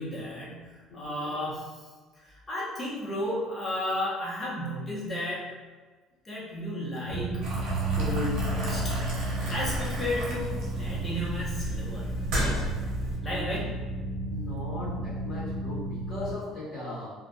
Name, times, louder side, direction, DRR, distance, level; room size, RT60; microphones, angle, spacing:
voice 1, 0.0-1.9 2.2-5.5 6.2-8.9 9.5-12.0 13.2-13.7, left 1 dB, 20° left, -6 dB, 0.9 m, -33 dB
sound 1, 7.1-16.3, right 3 dB, 75° left, 0.6 m, -32 dB
Boiling, 7.4-13.2, left 1 dB, 70° right, 0.8 m, -34 dB
voice 2, 14.3-17.1, left 2 dB, 55° left, -10 dB, 1.4 m, -38 dB
2.7 x 2.4 x 2.3 m, 1.4 s
cardioid pair, 120°, 0 cm